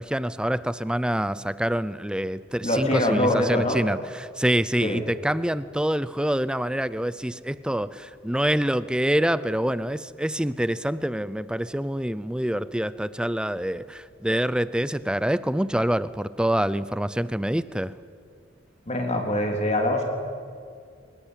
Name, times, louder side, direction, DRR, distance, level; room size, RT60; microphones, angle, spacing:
voice 1, 0.0-17.9, right 1 dB, 5° right, 16 dB, 0.6 m, -26 dB
voice 2, 2.6-3.8 4.8-5.0 18.9-20.0, left 1 dB, 35° left, 2 dB, 3.7 m, -24 dB
24.0 x 21.0 x 8.3 m, 2.2 s
head